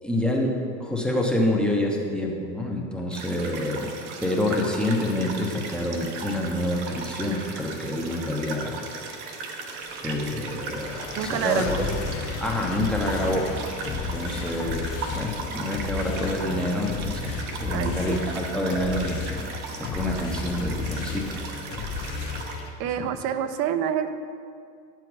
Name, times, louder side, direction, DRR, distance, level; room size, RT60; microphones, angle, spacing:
voice 1, 0.0-3.9 4.2-8.8 10.0-11.8 12.4-13.5 13.9-21.4 23.0-23.1, left 1 dB, ahead, 0 dB, 1.1 m, -27 dB
sound 1, 3.1-22.7, right 4 dB, 70° right, 1.2 m, -37 dB
sound 2, 10.0-22.7, left 5 dB, 40° left, 1.1 m, -33 dB
voice 2, 11.2-11.9 17.7-18.2 22.8-24.1, right 9 dB, 55° right, 11 dB, 0.6 m, -27 dB
9.7 x 4.6 x 6.1 m, 2.3 s
supercardioid pair, 100°, 36 cm